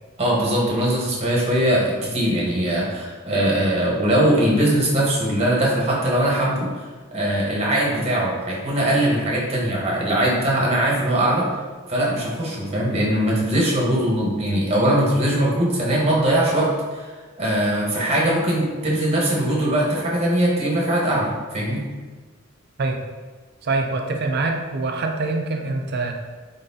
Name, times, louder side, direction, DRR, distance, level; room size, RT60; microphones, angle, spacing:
voice 1, 0.2-6.8 7.1-11.5 11.9-17.1 17.4-21.8, right 1 dB, 30° right, -4 dB, 1.0 m, -21 dB
voice 2, 23.6-26.1, right 3 dB, 50° right, 3 dB, 0.5 m, -24 dB
3.9 x 3.7 x 2.7 m, 1.3 s
head